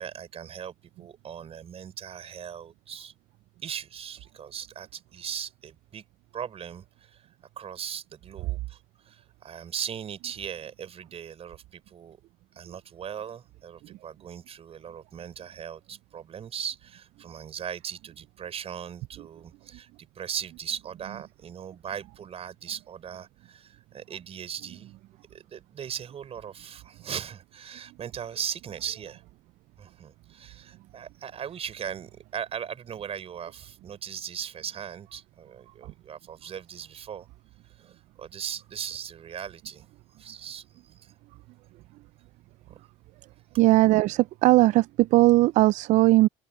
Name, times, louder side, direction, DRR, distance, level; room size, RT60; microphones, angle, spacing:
voice 1, 0.0-3.1 3.6-6.0 6.3-7.3 7.6-12.2 12.6-24.9 25.3-29.2 29.8-37.3 37.7-39.9 40.1-41.1 42.7-42.8, right 8 dB, 50° right, 4.2 m, -39 dB
voice 2, 43.6-46.3, right 18 dB, 65° right, 0.4 m, -19 dB
open air
hypercardioid pair, 70°, 13 cm